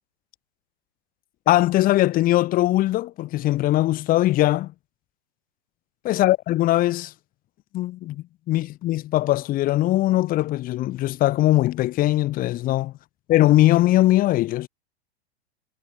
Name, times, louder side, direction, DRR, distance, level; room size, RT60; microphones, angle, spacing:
voice 1, 1.5-4.7 6.0-7.1 7.7-12.9 13.3-14.7, left 16 dB, 25° left, 0.8 m, -20 dB
hypercardioid pair, 105°, 34 cm